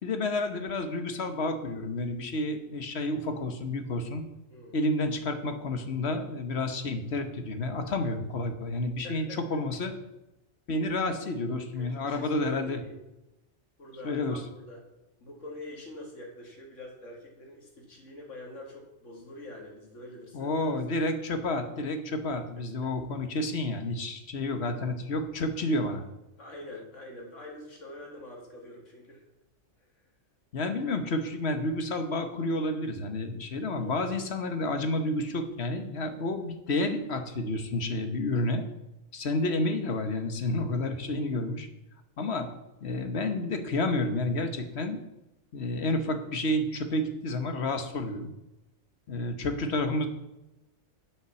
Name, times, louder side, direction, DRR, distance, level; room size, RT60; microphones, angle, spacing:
voice 1, 0.0-4.2 4.7-9.9 10.7-12.8 14.0-14.4 20.3-26.0 30.5-38.6 39.1-41.7 42.2-42.5 42.8-45.0 45.5-48.3 49.1-50.1, left 2 dB, 60° left, 7 dB, 1.4 m, -30 dB
voice 2, 9.0-9.4 11.8-13.0 13.8-14.8 15.2-20.8 24.5-24.7 26.4-29.2 33.6-33.9 38.3-38.6, left 1 dB, 80° left, 0 dB, 2.3 m, -45 dB
8.2 x 7.3 x 7.0 m, 0.95 s
omnidirectional pair, 1.3 m